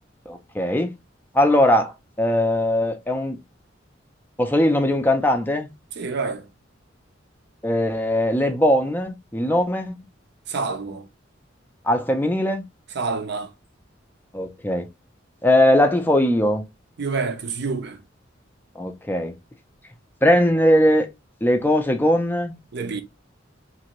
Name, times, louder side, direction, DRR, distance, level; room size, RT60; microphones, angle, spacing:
voice 1, 0.3-0.9 1.3-3.4 4.4-5.7 7.6-9.9 11.9-12.6 14.3-14.9 15.4-16.6 18.8-19.3 20.2-21.1 21.4-22.5, left 1 dB, 10° left, 0.4 m, -20 dB
voice 2, 6.0-6.5 10.5-11.0 12.9-13.5 17.0-18.0 22.7-23.0, right 4 dB, 60° right, 0.5 m, -27 dB
2.8 x 2.6 x 2.9 m
head